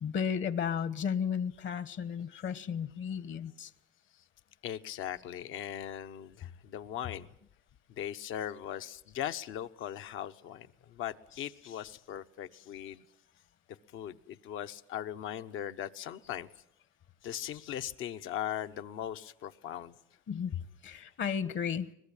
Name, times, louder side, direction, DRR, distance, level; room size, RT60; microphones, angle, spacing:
voice 1, 0.0-3.7 20.3-21.9, left 7 dB, 70° left, 15 dB, 1.4 m, -34 dB
voice 2, 2.3-2.6 4.6-7.3 7.9-13.0 13.9-16.5 17.2-19.9, left 10 dB, 90° left, 9 dB, 1.0 m, -39 dB
23.5 x 20.5 x 8.8 m, 0.70 s
cardioid pair, 90°, 20 cm